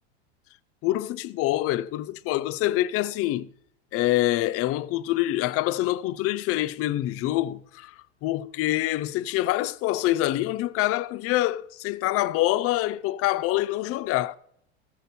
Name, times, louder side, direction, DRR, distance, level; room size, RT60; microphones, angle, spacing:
voice 1, 0.8-3.5 3.9-7.9 8.2-14.4, left 16 dB, 45° left, 0.5 m, -25 dB
14.5 x 6.7 x 4.2 m
hypercardioid pair, 95°, 33 cm